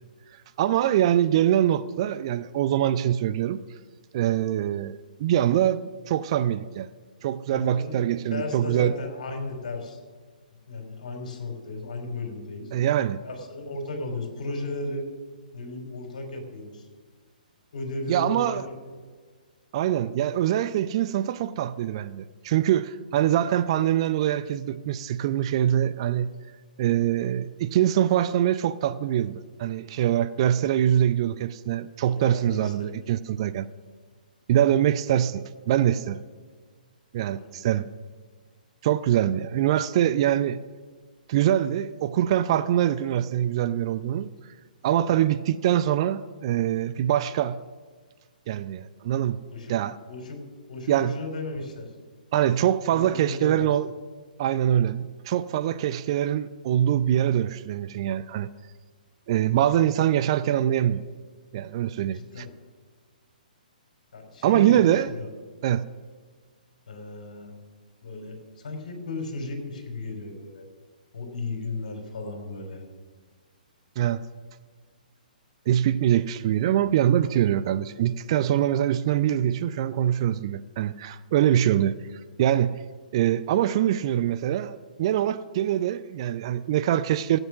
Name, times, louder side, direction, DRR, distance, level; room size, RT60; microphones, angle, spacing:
voice 1, 0.6-3.6 4.1-6.9 7.2-8.9 12.7-13.2 18.1-18.6 19.7-26.3 26.8-33.7 34.5-36.2 37.1-37.9 38.8-40.6 41.3-44.3 44.8-47.6 48.5-49.4 49.7-50.0 50.9-51.1 52.3-53.9 54.4-58.5 59.3-61.0 61.5-62.4 64.4-65.1 65.6-65.8 74.0-74.2 75.7-81.9 82.4-82.8 83.1-87.4, right 11 dB, 40° right, 14 dB, 0.4 m, -24 dB
voice 2, 7.5-10.0 10.7-12.7 13.2-15.0 15.5-16.9 17.7-18.7 32.0-33.1 37.3-37.6 49.5-49.8 50.1-50.4 50.7-51.9 52.9-53.7 62.1-62.5 64.1-65.3 66.9-67.5 68.0-70.6 71.1-72.8, left 2 dB, 55° left, 4 dB, 3.1 m, -35 dB
15.5 x 8.1 x 6.1 m, 1.5 s
figure-of-eight pair, 125°, 5 cm